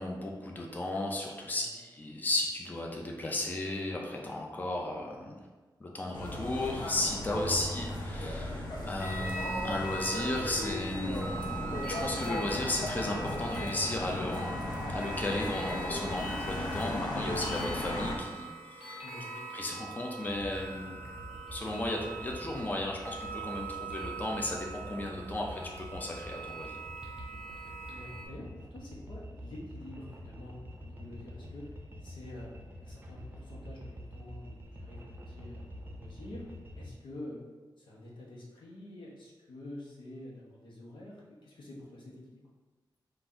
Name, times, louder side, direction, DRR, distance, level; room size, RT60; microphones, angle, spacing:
voice 1, 0.0-5.3 5.8-19.0 19.5-21.0 21.5-26.8, left 1 dB, 20° left, 0 dB, 0.5 m, -35 dB
sound 1, 6.1-18.2, left 1 dB, 65° left, 0.7 m, -36 dB
sound 2, 9.0-28.3, right 2 dB, 5° right, 1.1 m, -42 dB
voice 2, 19.0-19.4 27.9-31.7 32.0-32.5 32.8-37.4 37.8-42.5, left 1 dB, 90° left, -4 dB, 1.1 m, -47 dB
sound 3, 20.3-36.9, equal, 30° right, 0.6 m, -47 dB
3.9 x 2.6 x 4.4 m, 1.3 s
wide cardioid pair, 115°, 8 cm